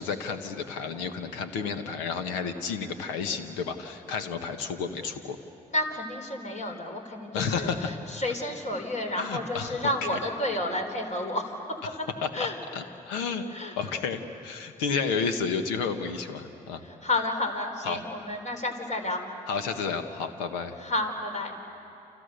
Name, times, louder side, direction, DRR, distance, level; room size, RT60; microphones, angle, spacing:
voice 1, 0.0-5.4 7.3-8.0 9.2-9.9 12.2-12.5 12.7-13.4 13.8-16.8 17.8-18.0 19.5-20.7, left 5 dB, 80° left, 8 dB, 1.5 m, -31 dB
voice 2, 5.7-11.8 12.3-12.6 13.5-13.8 14.9-15.1 16.8-19.2 20.8-21.6, left 1 dB, 40° left, 4 dB, 4.4 m, -31 dB
30.0 x 27.5 x 6.8 m, 2.7 s
hypercardioid pair, 45°, 19 cm